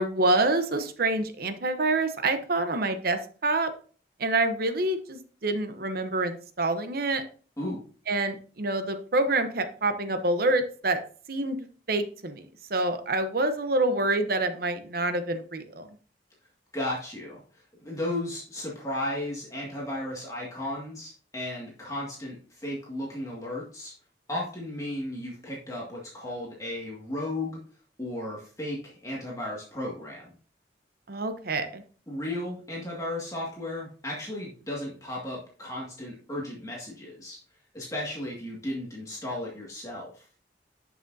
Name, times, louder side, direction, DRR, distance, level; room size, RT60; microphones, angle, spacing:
voice 1, 0.0-3.7 4.2-7.2 8.1-11.0 11.3-11.6 11.9-12.4 12.7-15.9 31.1-31.8, right 2 dB, 55° right, 8 dB, 0.9 m, -27 dB
voice 2, 16.7-23.9 24.3-27.6 28.0-30.3 32.1-37.4 37.7-40.3, left 1 dB, 20° left, -4 dB, 1.9 m, -35 dB
11.0 x 6.0 x 2.7 m, 0.41 s
head